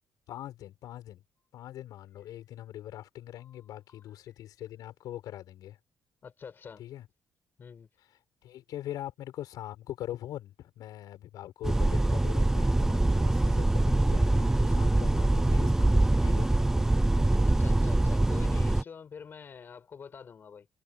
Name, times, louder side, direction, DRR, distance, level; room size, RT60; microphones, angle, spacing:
voice 1, 0.3-1.2 1.5-5.8 6.8-7.1 8.4-16.5, left 13 dB, 80° left, 6.5 m, -42 dB
voice 2, 6.2-6.8 7.6-7.9 15.0-15.1 17.4-20.7, left 6 dB, 35° left, 4.6 m, -47 dB
sound 1, 11.6-18.8, right 2 dB, 5° right, 0.6 m, -24 dB
cardioid pair, 175°, 6 cm